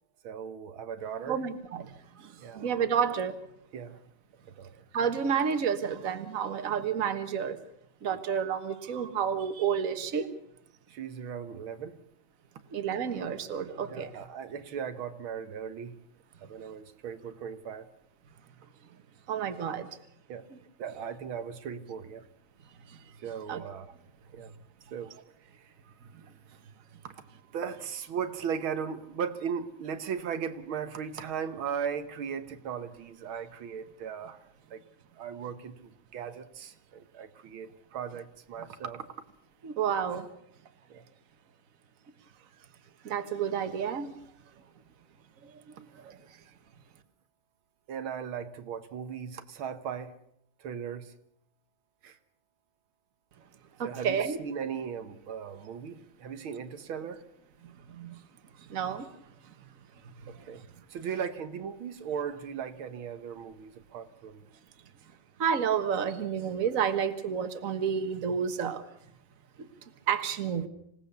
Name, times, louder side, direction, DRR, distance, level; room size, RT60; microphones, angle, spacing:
voice 1, 0.2-1.4 2.4-2.7 3.7-4.0 4.5-4.8 8.1-8.2 10.9-12.0 13.9-16.0 16.4-17.9 20.3-20.5 20.8-22.2 23.2-24.0 24.3-24.5 24.9-25.1 27.0-27.1 27.5-34.4 34.7-34.8 35.2-39.1 40.9-41.1 47.9-50.2 50.6-51.1 52.0-52.2 53.8-57.2 60.3-60.6 60.9-64.4, right 7 dB, 85° right, 2.1 m, -37 dB
voice 2, 1.3-3.4 4.9-7.6 8.0-10.3 12.7-14.2 19.3-19.9 22.9-23.0 23.5-23.7 39.6-40.3 43.0-44.1 45.4-45.5 46.0-46.2 53.8-54.4 57.6-58.2 58.7-59.1 60.4-60.5 65.4-68.9 70.1-70.7, right 7 dB, 45° right, 1.7 m, -30 dB
26.5 x 17.5 x 6.8 m
omnidirectional pair, 2.2 m